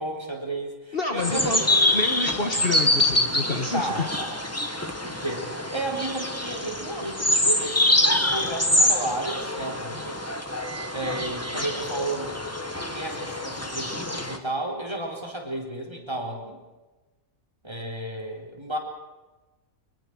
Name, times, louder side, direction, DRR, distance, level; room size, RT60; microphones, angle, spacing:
voice 1, 0.0-1.9 2.4-2.5 3.7-4.4 4.7-10.2 10.9-12.4 12.9-16.6 17.6-18.8, right 2 dB, 20° right, 1 dB, 4.4 m, -33 dB
voice 2, 0.9-1.6 1.9-4.1, left 2 dB, 40° left, 4 dB, 1.7 m, -28 dB
sound 1, 1.2-14.4, left 1 dB, 10° left, 1.7 m, -25 dB
24.0 x 21.5 x 6.4 m, 1.2 s
omnidirectional pair, 1.5 m